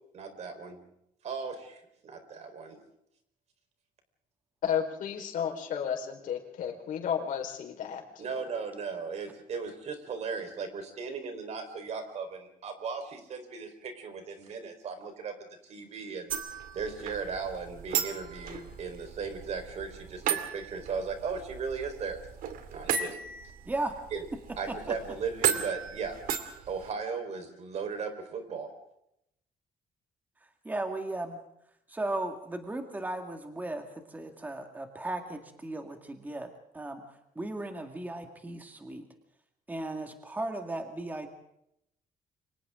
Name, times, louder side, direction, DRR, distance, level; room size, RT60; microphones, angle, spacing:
voice 1, 0.1-0.8 1.2-2.8 8.2-15.3 15.6-16.4 16.7-22.2 22.7-23.2 24.1-24.2 24.6-26.2 26.7-28.7, right 5 dB, 50° right, 7 dB, 4.5 m, -37 dB
voice 2, 4.6-8.0, left 8 dB, 70° left, 2 dB, 4.7 m, -32 dB
sound 1, 16.3-26.9, right 8 dB, 85° right, 2.6 m, -35 dB
voice 3, 23.7-24.0 30.6-31.4 31.9-37.0 37.4-39.1 39.7-41.3, right 2 dB, 10° right, 5 dB, 2.0 m, -36 dB
29.5 x 25.0 x 3.8 m, 0.77 s
cardioid pair, 165°, 14 cm